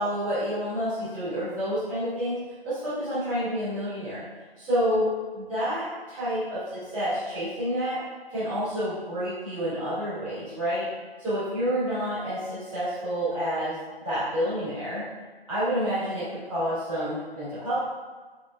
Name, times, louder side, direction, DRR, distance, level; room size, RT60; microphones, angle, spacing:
voice 1, 0.0-4.2 4.6-8.0 8.3-10.9 11.2-13.8 14.0-15.1 15.5-17.8, equal, ahead, -28 dB, 0.4 m, -29 dB
4.5 x 3.4 x 2.5 m, 1.4 s
figure-of-eight pair, 140°, 30 cm